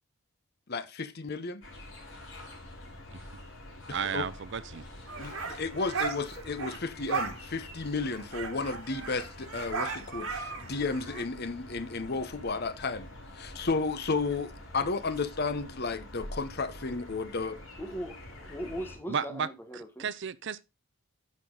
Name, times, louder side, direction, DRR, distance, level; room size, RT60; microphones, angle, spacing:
voice 1, 0.7-1.6 3.9-4.3 5.2-13.1 13.4-17.6, left 4 dB, 50° left, 0.8 m, -33 dB
sound 1, 1.6-19.0, left 1 dB, 65° left, 5.2 m, -46 dB
voice 2, 3.9-4.8 19.1-19.5 20.0-20.6, right 6 dB, 55° right, 0.5 m, -33 dB
sound 2, 5.1-6.8 7.1-7.4 7.7-7.8 8.0-11.2, right 5 dB, 90° right, 2.0 m, -36 dB
voice 3, 17.8-20.1, equal, 10° left, 1.2 m, -39 dB
10.5 x 6.0 x 3.8 m
head